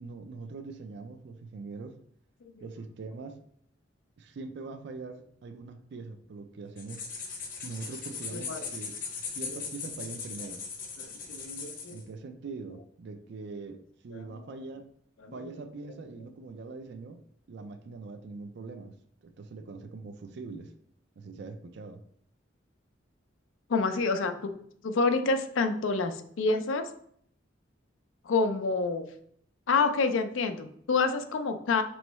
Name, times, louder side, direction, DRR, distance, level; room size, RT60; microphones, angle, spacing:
voice 1, 0.0-2.0 2.6-3.4 4.2-7.1 7.6-9.0 9.3-10.6 11.9-14.9 15.3-17.2 17.5-18.9 19.2-20.7 21.2-22.0, right 3 dB, 60° right, 8 dB, 0.4 m, -42 dB
sound 1, 6.8-12.0, left 5 dB, 45° left, 0.9 m, -39 dB
voice 2, 8.3-8.7 11.0-12.0 14.1-14.2 15.2-15.3 23.7-24.6 24.8-26.9 28.2-29.1 29.7-31.8, left 4 dB, 80° left, 8 dB, 0.5 m, -28 dB
4.4 x 3.1 x 3.0 m, 0.65 s
head